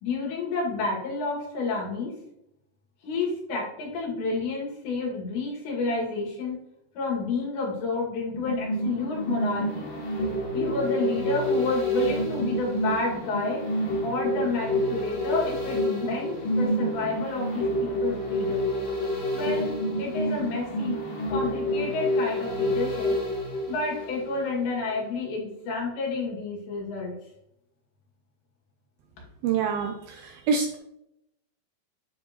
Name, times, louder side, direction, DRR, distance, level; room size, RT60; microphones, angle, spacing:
voice 1, 0.0-2.1 3.0-6.6 6.9-9.9 10.5-13.6 14.0-18.7 19.3-21.0 21.3-23.2 23.7-27.2, left 3 dB, 80° left, -3 dB, 4.6 m, -30 dB
sound 1, 8.3-24.6 24.9-25.0, equal, 60° left, 3.0 m, -28 dB
voice 2, 29.4-30.8, right 6 dB, 80° right, 4 dB, 2.1 m, -26 dB
9.7 x 7.4 x 3.1 m, 0.82 s
omnidirectional pair, 4.9 m